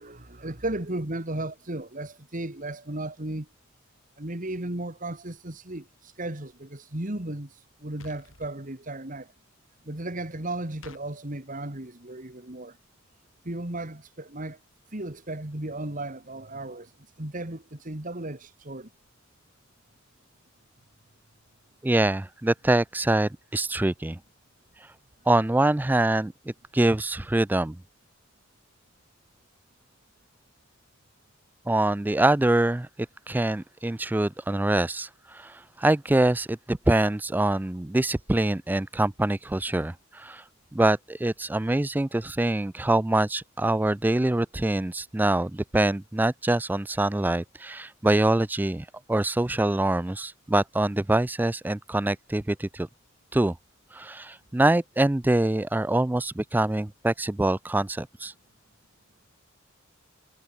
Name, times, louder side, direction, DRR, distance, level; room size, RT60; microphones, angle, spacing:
voice 1, 0.0-3.5 4.2-9.3 9.9-12.8 13.4-14.6 14.9-16.9 17.2-18.9, right 1 dB, 40° right, 2.4 m, -35 dB
sound 1, 8.0-8.5 10.8-11.1, left 3 dB, 80° left, 3.7 m, -48 dB
voice 2, 21.8-24.2 25.3-27.8 31.7-32.9 33.3-40.4 40.7-52.9 53.3-53.6 53.9-58.3, right 1 dB, 10° right, 0.3 m, -24 dB
head